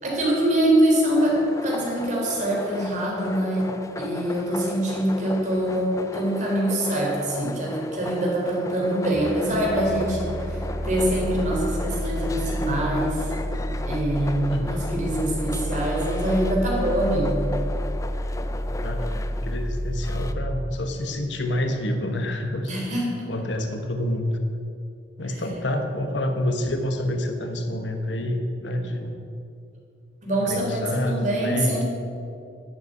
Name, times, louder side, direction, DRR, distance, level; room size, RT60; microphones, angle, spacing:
voice 1, 0.0-3.7 4.0-5.9 6.1-13.3 13.8-17.5 22.7-23.1 25.3-25.4 30.2-31.8, right 1 dB, 40° right, -3 dB, 3.8 m, -24 dB
sound 1, 1.2-20.3, left 2 dB, 15° left, 0.5 m, -37 dB
sound 2, 9.1-21.8, equal, 15° right, 3.6 m, -30 dB
voice 2, 18.8-22.7 23.3-24.4 25.2-29.1 30.3-31.8, left 1 dB, 75° left, 5 dB, 1.2 m, -28 dB
11.5 x 8.4 x 9.4 m, 2.6 s
head